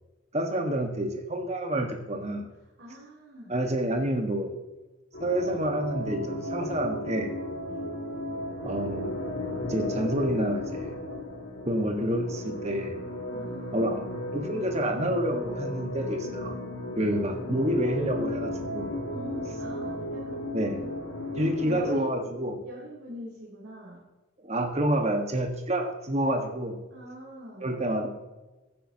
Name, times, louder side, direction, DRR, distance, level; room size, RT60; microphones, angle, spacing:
voice 1, 0.3-2.5 3.5-4.6 5.2-7.3 8.6-9.1 9.7-10.9 11.6-13.0 13.7-16.6 17.0-18.9 20.5-20.8 21.4-22.6 24.4-26.8 27.6-28.1, right 1 dB, 35° right, 4 dB, 1.5 m, -28 dB
voice 2, 2.6-3.5 7.7-7.8 13.3-14.1 19.1-20.5 20.7-20.9 21.6-22.3 22.6-24.1 26.9-27.7, equal, 75° right, -7 dB, 3.2 m, -43 dB
sound 1, 5.1-21.9, left 1 dB, 75° left, 2.2 m, -35 dB
15.5 x 9.6 x 2.9 m, 1.1 s
head